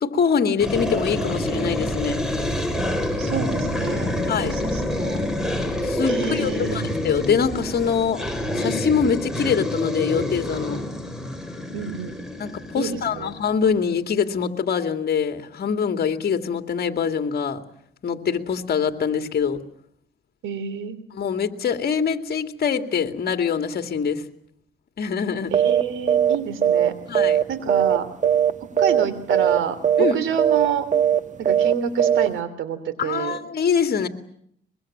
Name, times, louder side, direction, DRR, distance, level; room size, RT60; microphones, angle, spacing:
voice 1, 0.0-2.2 4.3-4.5 5.8-8.2 8.5-10.8 12.4-17.6 18.0-19.6 21.1-24.2 25.0-25.5 27.1-27.4 30.0-30.2 33.0-34.1, left 6 dB, 50° left, 7 dB, 2.3 m, -24 dB
sound 1, 0.6-13.5, left 1 dB, 5° right, 4.9 m, -27 dB
voice 2, 3.2-4.1 4.4-5.2 6.1-6.8 11.7-12.2 12.7-13.3 20.4-21.0 25.5-26.9 27.5-28.1 28.8-30.9 31.4-33.4, right 7 dB, 80° right, 14 dB, 3.0 m, -28 dB
sound 2, 25.5-25.8 26.1-26.3 26.6-28.0 28.2-28.5 28.8-29.0 29.3-29.6 29.8-30.1 30.4-30.7 30.9-31.2 31.4-31.7 32.0-32.3, right 9 dB, 40° right, 1.3 m, -18 dB
23.5 x 22.5 x 8.7 m, 0.69 s
cardioid pair, 90°, 20 cm